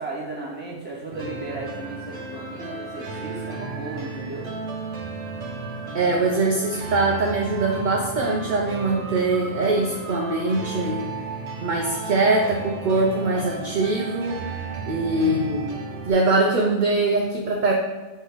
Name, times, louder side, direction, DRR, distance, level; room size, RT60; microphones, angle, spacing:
voice 1, 0.0-4.5 15.2-15.4, right 3 dB, 10° right, -7 dB, 1.9 m, -35 dB
sound 1, 1.1-16.1, right 3 dB, 65° right, 1.2 m, -34 dB
voice 2, 5.9-11.1 11.6-14.5 14.9-15.7 16.1-17.7, right 2 dB, 50° right, 0 dB, 0.7 m, -22 dB
7.6 x 3.3 x 4.9 m, 1.2 s
omnidirectional pair, 1.3 m